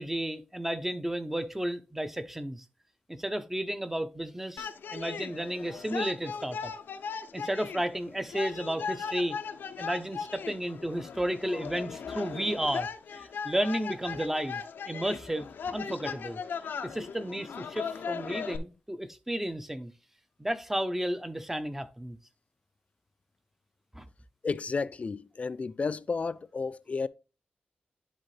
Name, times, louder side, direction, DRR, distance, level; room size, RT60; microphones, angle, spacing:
voice 1, 0.0-2.6 3.1-6.7 7.3-9.4 9.8-14.6 14.9-16.4 16.8-19.9 20.4-22.2 23.9-24.1, right 1 dB, 10° right, 0.7 m, -33 dB
sound 1, 4.6-18.6, left 6 dB, 80° left, 0.6 m, -38 dB
voice 2, 24.4-27.1, left 4 dB, 40° left, 0.4 m, -32 dB
10.5 x 3.7 x 3.2 m
cardioid pair, 85°, 3 cm